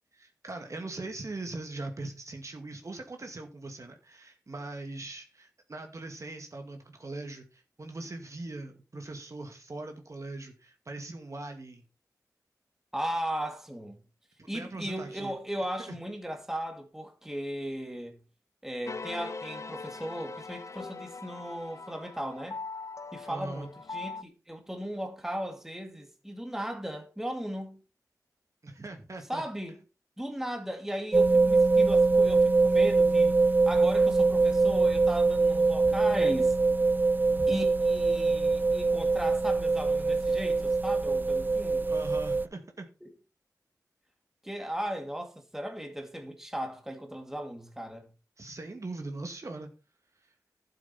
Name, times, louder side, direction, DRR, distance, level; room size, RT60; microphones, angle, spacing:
voice 1, 0.1-11.8 14.4-15.3 15.9-16.0 23.3-23.7 28.6-29.4 41.8-42.9 48.4-49.7, right 2 dB, 50° right, 2.2 m, -41 dB
voice 2, 12.9-14.0 14.5-18.2 18.6-22.6 23.1-27.8 29.3-29.8 30.2-33.4 33.7-36.6 37.5-41.9 43.0-43.1 44.4-48.1, equal, 5° right, 2.3 m, -36 dB
sound 1, 18.8-24.2, left 4 dB, 50° left, 0.6 m, -41 dB
sound 2, 31.1-42.4, right 3 dB, 30° right, 0.5 m, -23 dB
12.0 x 7.7 x 4.3 m
wide cardioid pair, 70°, 7 cm